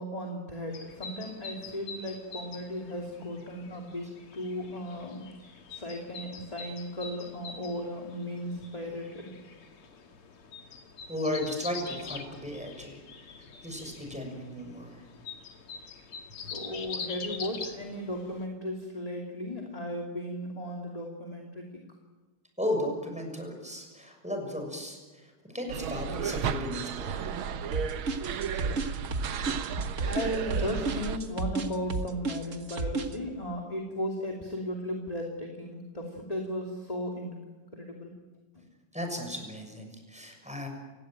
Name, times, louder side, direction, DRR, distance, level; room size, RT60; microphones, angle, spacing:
voice 1, 0.0-9.4 16.4-21.7 30.1-37.4 37.7-38.1 38.6-38.7, equal, 15° left, 1 dB, 2.7 m, -36 dB
sound 1, 0.7-18.5, left 5 dB, 85° left, 3.1 m, -44 dB
voice 2, 11.1-13.0 13.6-15.0 22.6-25.2 25.5-27.3 38.9-40.7, left 1 dB, 5° right, 2 dB, 6.4 m, -35 dB
sound 2, 25.7-31.2, right 7 dB, 70° right, 1.8 m, -33 dB
sound 3, 27.7-33.1, right 3 dB, 40° right, 1.6 m, -31 dB
29.5 x 17.0 x 9.1 m, 1.3 s
omnidirectional pair, 2.4 m